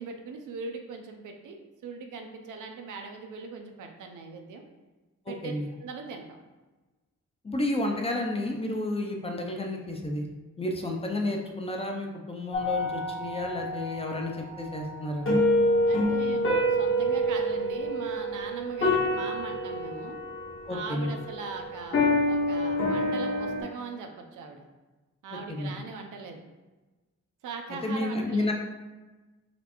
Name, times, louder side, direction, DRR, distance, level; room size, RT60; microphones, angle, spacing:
voice 1, 0.0-4.6 5.3-5.5 5.8-6.4 15.9-20.2 20.7-24.6 25.2-26.4 27.4-28.5, right 4 dB, 80° right, 4 dB, 0.6 m, -40 dB
voice 2, 5.3-5.7 7.4-10.2 10.6-15.4 20.7-21.1 25.6-25.7 27.7-28.5, left 1 dB, 20° left, 2 dB, 0.5 m, -31 dB
sound 1, 12.5-23.6, left 1 dB, 45° left, 1.1 m, -27 dB
4.1 x 3.2 x 2.9 m, 1.2 s
wide cardioid pair, 130°, 30 cm